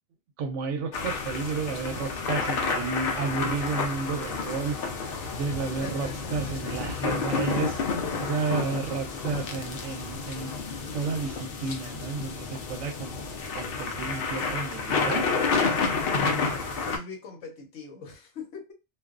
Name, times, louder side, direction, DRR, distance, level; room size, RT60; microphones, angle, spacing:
voice 1, 0.4-4.8 5.3-7.8 8.2-10.6 10.9-13.2 13.6-15.3, right 4 dB, 90° right, 0.9 m, -32 dB
sound 1, 0.9-17.0, left 4 dB, 60° left, 0.7 m, -30 dB
voice 2, 5.4-6.9 8.0-8.5 15.2-18.7, left 4 dB, 75° left, 1.1 m, -42 dB
2.4 x 2.2 x 2.3 m
omnidirectional pair, 1.2 m